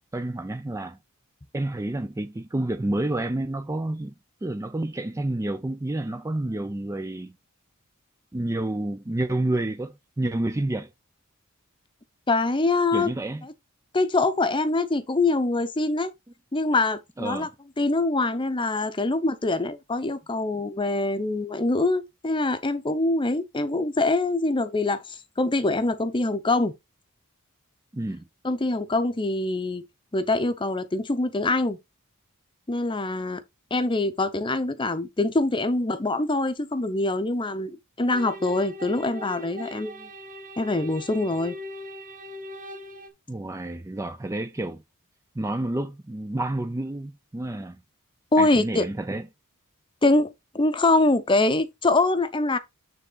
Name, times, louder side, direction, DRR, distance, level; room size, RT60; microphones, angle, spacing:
voice 1, 0.1-1.0 1.5-4.1 4.4-7.4 8.3-10.9 12.9-13.4 17.2-17.5 27.9-28.2 43.3-44.8 45.4-47.8 48.4-49.3, right 1 dB, 15° right, 0.4 m, -29 dB
voice 2, 12.3-13.1 13.9-16.1 16.5-17.5 17.8-26.7 28.4-29.8 30.1-31.8 32.7-33.4 33.7-40.1 40.6-41.6 48.3-48.8 50.0-52.6, left 2 dB, 20° left, 0.7 m, -24 dB
sound 1, 38.1-43.1, left 1 dB, 35° right, 1.2 m, -40 dB
9.2 x 3.6 x 3.9 m
head